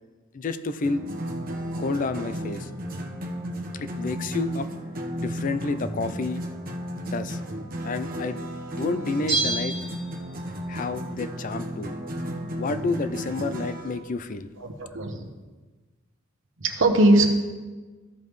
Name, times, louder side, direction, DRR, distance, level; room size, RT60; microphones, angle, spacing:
voice 1, 0.3-1.0 1.8-2.7 3.7-4.7 5.2-6.4 7.1-7.4 7.8-8.4 8.8-9.8 10.7-11.9 12.6-14.5, left 3 dB, 40° left, 11 dB, 0.4 m, -29 dB
sound 1, 0.8-14.0, equal, 45° right, 0.9 m, -33 dB
Bell, 9.3-10.7 11.0-11.1, right 3 dB, 20° right, 2.8 m, -29 dB
voice 2, 14.6-15.3 16.6-17.3, right 1 dB, 70° right, 5 dB, 1.0 m, -20 dB
14.5 x 5.3 x 3.2 m, 1.3 s
head